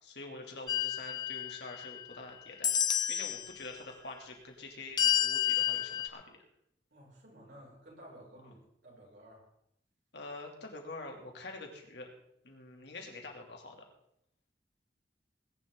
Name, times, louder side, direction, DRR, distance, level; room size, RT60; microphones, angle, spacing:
voice 1, 0.0-6.4 8.4-8.5 10.1-12.1 12.4-13.9, left 2 dB, 75° left, 1 dB, 3.0 m, -46 dB
sound 1, 0.7-2.2 2.6-3.5 5.0-6.1, left 10 dB, 25° left, 0.6 m, -30 dB
voice 2, 6.9-9.5, right 1 dB, 70° right, -4 dB, 6.4 m, -54 dB
20.5 x 10.5 x 3.9 m, 0.75 s
head